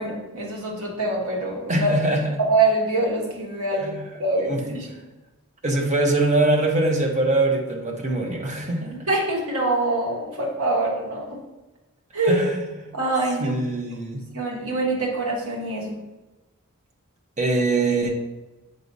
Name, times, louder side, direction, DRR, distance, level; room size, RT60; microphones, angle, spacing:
voice 1, 0.0-2.0 2.4-4.9 9.1-11.4 12.1-12.4 12.9-13.5 14.3-16.0, right 2 dB, 75° right, -2 dB, 1.3 m, -24 dB
voice 2, 1.7-2.3 3.8-4.0 4.4-4.6 5.6-8.9 12.3-12.9 13.4-14.3 17.4-18.1, right 2 dB, 35° right, 1 dB, 0.9 m, -23 dB
7.6 x 4.6 x 2.7 m, 1.1 s
head